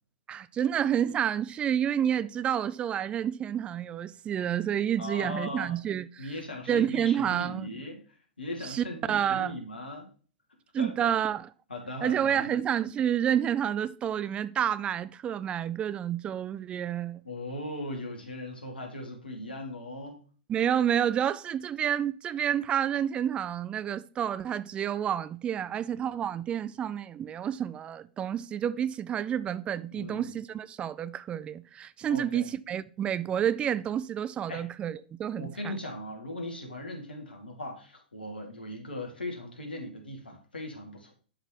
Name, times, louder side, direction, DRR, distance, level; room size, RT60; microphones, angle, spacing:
voice 1, 0.3-6.3 6.7-7.7 8.6-9.6 10.7-11.5 12.0-17.2 20.5-35.7, right 9 dB, 20° right, 0.4 m, -29 dB
voice 2, 5.0-5.8 6.2-10.1 10.8-11.1 11.7-12.5 17.2-20.2 29.9-30.3 32.1-32.5 34.5-34.6 35.3-41.1, left 1 dB, 80° left, 2.1 m, -39 dB
11.5 x 4.0 x 2.9 m
figure-of-eight pair, 105°, 5 cm